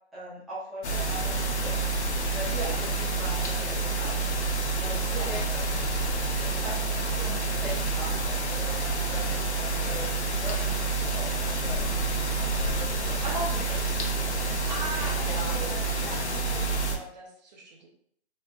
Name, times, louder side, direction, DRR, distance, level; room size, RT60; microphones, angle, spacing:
voice 1, 0.1-1.8 2.3-2.5 3.0-4.3 4.5-6.0 6.4-10.8 11.1-12.0 12.7-13.8 14.7-15.6, equal, ahead, -13 dB, 0.8 m, -41 dB
sound 1, 0.8-17.0, right 3 dB, 75° left, 0.9 m, -28 dB
voice 2, 2.5-2.9 5.1-5.4 13.2-13.6 14.7-17.9, right 2 dB, 40° right, 0 dB, 1.0 m, -38 dB
3.9 x 3.8 x 2.5 m, 0.65 s
hypercardioid pair, 145°, 34 cm